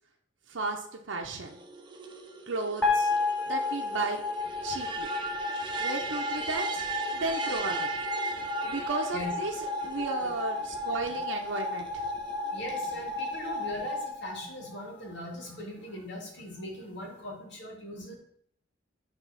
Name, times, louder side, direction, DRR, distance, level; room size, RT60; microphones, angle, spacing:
voice 1, 0.5-1.6 2.5-3.1 3.5-4.2 4.6-5.1 5.8-6.9 7.1-7.9 8.6-12.1, right 3 dB, 75° right, 1 dB, 0.8 m, -34 dB
sound 1, 1.4-14.1, right 4 dB, 25° right, 0.8 m, -39 dB
sound 2, 2.8-15.1, left 3 dB, 10° left, 1.7 m, -33 dB
voice 2, 12.5-18.1, left 1 dB, 65° left, -1 dB, 2.5 m, -40 dB
8.2 x 3.7 x 5.7 m, 0.66 s
head